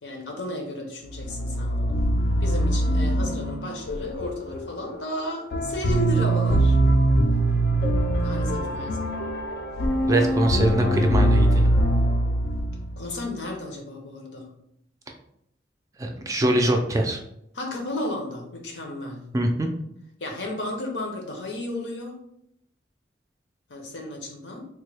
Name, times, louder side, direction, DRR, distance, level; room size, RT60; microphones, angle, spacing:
voice 1, 0.0-2.0 2.4-6.8 8.2-9.0 13.0-14.5 17.5-19.3 20.2-22.2 23.7-24.7, left 1 dB, 90° left, 1 dB, 0.8 m, -33 dB
sound 1, 1.1-13.2, right 1 dB, 60° left, 0.4 m, -23 dB
voice 2, 10.1-11.7 16.0-17.2 19.3-19.7, right 1 dB, 20° right, 3 dB, 0.3 m, -23 dB
3.4 x 2.2 x 3.3 m, 0.75 s
head